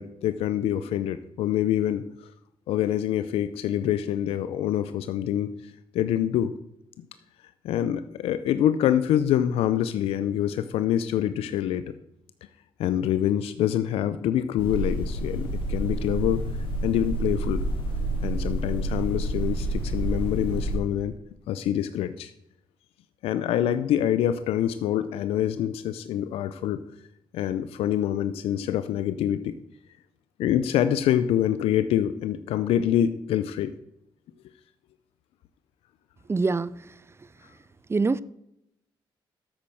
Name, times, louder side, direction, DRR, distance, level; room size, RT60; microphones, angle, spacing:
voice 1, 0.0-2.0 2.7-5.5 5.9-6.5 7.6-11.8 12.8-16.4 16.8-17.6 18.2-21.1 21.5-22.3 23.2-26.8 27.3-29.5 30.4-33.7, left 11 dB, 85° left, 0.5 m, -25 dB
sound 1, 14.6-20.8, right 1 dB, 60° left, 3.5 m, -29 dB
voice 2, 36.3-36.8 37.9-38.2, right 3 dB, 25° right, 0.6 m, -24 dB
8.7 x 7.5 x 6.2 m
supercardioid pair, 65°, 10 cm